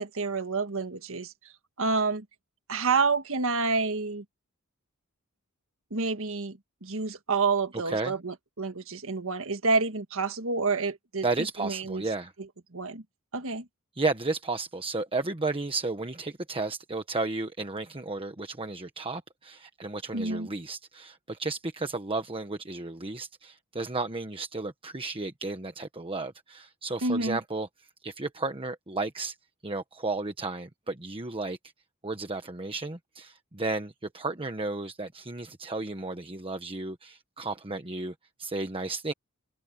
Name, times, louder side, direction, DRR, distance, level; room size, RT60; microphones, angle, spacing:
voice 1, 0.0-1.5 1.8-2.2 2.7-4.2 5.9-11.2 11.6-12.0 12.7-13.0 13.3-13.7 20.1-20.5 27.0-27.4, right 4 dB, 65° right, 1.7 m, -28 dB
voice 2, 11.2-12.3 14.0-27.7 28.0-29.3 29.6-31.6 32.0-39.1, right 3 dB, 25° right, 1.3 m, -33 dB
head